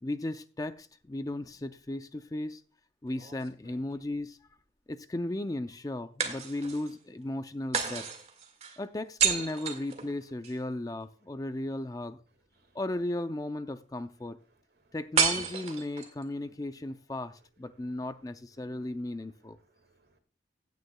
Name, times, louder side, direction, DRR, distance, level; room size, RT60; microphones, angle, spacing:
voice 1, 0.0-2.6 3.0-4.4 4.9-8.1 8.8-12.2 12.7-14.4 14.9-19.6, left 1 dB, 20° left, 0.4 m, -36 dB
sound 1, 3.1-4.2 6.2-7.0 7.7-10.6 15.2-16.2, right 6 dB, 35° right, 1.8 m, -31 dB
voice 2, 14.5-15.0 17.9-18.0 19.6-20.2, right 2 dB, 65° right, 1.9 m, -69 dB
16.0 x 9.4 x 2.3 m
head